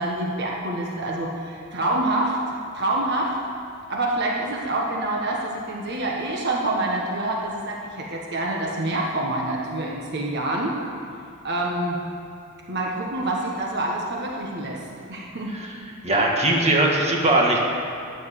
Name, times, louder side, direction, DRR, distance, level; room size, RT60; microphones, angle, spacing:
voice 1, 0.0-2.4 2.7-3.4 3.9-10.7 11.4-12.0 12.7-15.6, right 2 dB, 55° right, -1 dB, 1.5 m, -26 dB
voice 2, 16.0-17.6, right 2 dB, 30° right, -1 dB, 1.8 m, -20 dB
13.5 x 10.0 x 6.9 m, 2.6 s
head